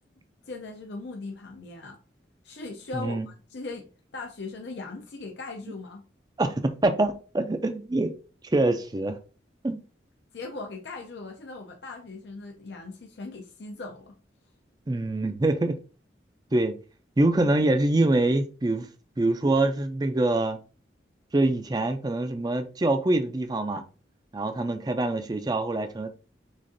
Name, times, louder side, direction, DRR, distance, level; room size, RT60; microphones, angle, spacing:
voice 1, 0.5-2.0 2.4-6.0 10.3-14.1, left 3 dB, 75° left, 0.6 m, -39 dB
voice 2, 2.9-3.3 6.4-8.1 8.5-9.2 9.6-9.8 14.9-15.8 16.5-16.7 17.2-18.9 19.2-20.6 21.3-23.8 24.3-26.1, right 2 dB, 20° right, 0.4 m, -25 dB
6.2 x 2.5 x 2.6 m
head